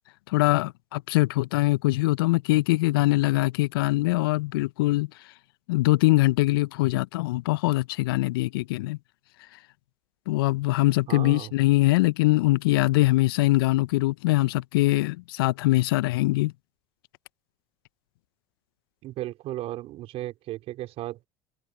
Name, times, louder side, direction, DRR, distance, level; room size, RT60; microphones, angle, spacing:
voice 1, 0.3-5.1 5.7-9.0 10.3-16.5, left 19 dB, 70° left, 1.1 m, -23 dB
voice 2, 11.1-11.5 19.0-21.3, right 15 dB, 55° right, 4.8 m, -35 dB
hypercardioid pair, 70°, 12 cm